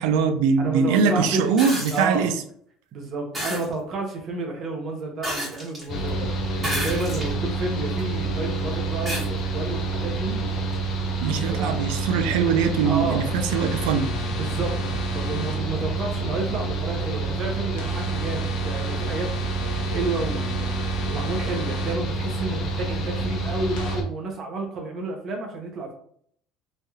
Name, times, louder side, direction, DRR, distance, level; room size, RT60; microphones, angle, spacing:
voice 1, 0.0-2.3 11.2-14.1, right 6 dB, 85° right, 0.3 m, -22 dB
voice 2, 0.6-1.5 1.9-2.3 2.9-10.5 11.3-11.7 12.8-13.3 14.4-14.8 15.1-19.3 19.7-20.7 21.1-25.9, right 3 dB, 45° right, 0.7 m, -31 dB
sound 1, 1.6-2.1 3.3-3.7 5.2-5.8 6.6-7.3 8.0-8.1 9.1-9.3 10.7-10.8, equal, 15° right, 1.2 m, -30 dB
Mechanical fan, 5.9-24.0, right 3 dB, 45° left, 0.7 m, -28 dB
sound 2, 13.5-15.5 17.8-21.9 23.7-23.9, left 4 dB, 90° left, 0.9 m, -39 dB
3.1 x 2.8 x 2.3 m
cardioid pair, 135°, 0 cm